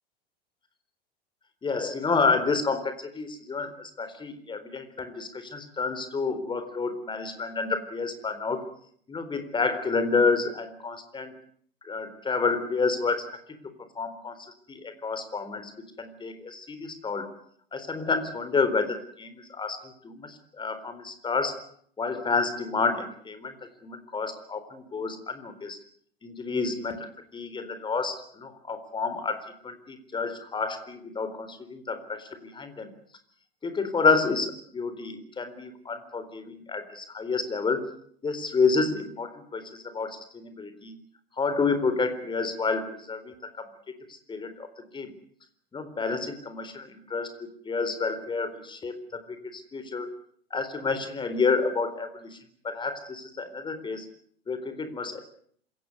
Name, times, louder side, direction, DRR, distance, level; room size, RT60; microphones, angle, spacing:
voice 1, 1.6-8.6 9.1-11.3 11.9-13.2 14.0-14.3 14.7-15.7 16.0-17.3 17.7-21.6 22.0-23.5 23.8-25.8 26.2-27.1 27.3-32.9 33.6-34.5 34.7-37.8 38.2-40.9 41.4-43.3 44.3-44.7 44.9-45.1 45.7-50.1 50.5-52.4 52.6-54.1 54.5-55.2, left 4 dB, 15° left, 10 dB, 4.1 m, -29 dB
27.0 x 16.5 x 9.6 m, 0.63 s
figure-of-eight pair, 90°, 30 cm